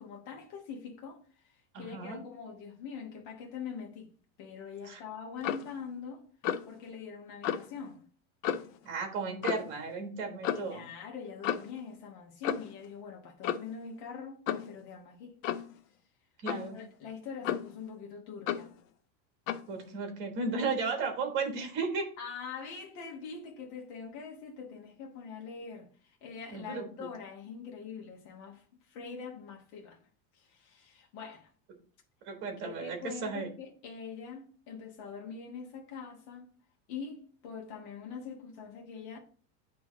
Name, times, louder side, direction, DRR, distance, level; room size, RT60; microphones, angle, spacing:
voice 1, 0.0-4.1 4.4-6.3 6.7-8.0 10.5-15.4 16.7-18.7 22.2-30.0 30.3-31.5 32.6-36.5 36.9-39.2, left 6 dB, 60° left, 1.2 m, -44 dB
voice 2, 1.7-2.2 4.8-5.0 8.8-10.9 16.4-16.8 19.7-22.1 26.5-27.1 32.2-33.5, right 4 dB, 30° right, 1.4 m, -35 dB
Clock, 5.4-5.7 6.4-6.7 7.4-7.7 8.4-8.8 9.4-9.7 10.4-10.7 11.4-11.8 12.4-12.8 13.4-13.8 14.5-14.7 15.4-15.7 16.5-16.7 17.4-17.8 18.5-18.7 19.5-19.7, left 10 dB, 85° left, 0.6 m, -33 dB
8.9 x 3.1 x 3.7 m
supercardioid pair, 180°, 39 cm